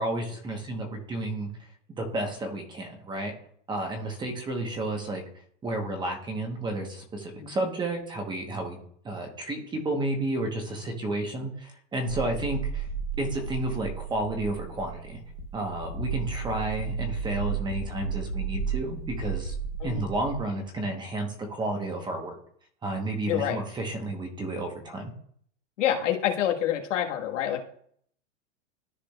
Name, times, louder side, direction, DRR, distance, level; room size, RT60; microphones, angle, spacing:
voice 1, 0.0-1.5 1.9-3.3 3.7-5.2 5.6-8.8 9.0-12.9 13.2-15.2 15.5-19.5 19.8-22.4 22.8-25.1, right 2 dB, 10° right, 3 dB, 1.1 m, -31 dB
sound 1, 12.1-20.4, right 5 dB, 60° left, 1.0 m, -33 dB
voice 2, 23.3-23.6 25.8-27.6, left 10 dB, 80° left, 2 dB, 1.6 m, -27 dB
13.5 x 4.9 x 2.4 m, 0.62 s
supercardioid pair, 150°, 37 cm